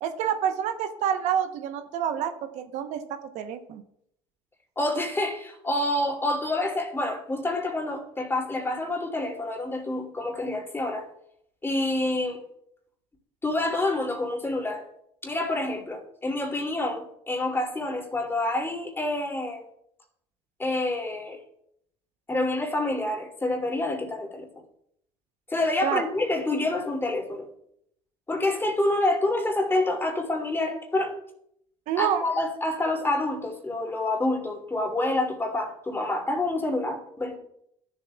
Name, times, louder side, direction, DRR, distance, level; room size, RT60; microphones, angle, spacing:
voice 1, 0.0-3.0 3.3-3.8 25.8-26.0 31.9-32.2, right 9 dB, 70° right, 8 dB, 0.8 m, -27 dB
voice 2, 4.8-11.1 11.6-12.4 13.4-14.8 15.2-19.6 20.6-21.4 22.3-24.5 25.5-27.4 28.3-31.1 32.0-37.3, left 2 dB, 20° left, 1 dB, 2.6 m, -27 dB
13.0 x 7.5 x 2.3 m, 0.74 s
supercardioid pair, 80°, 13 cm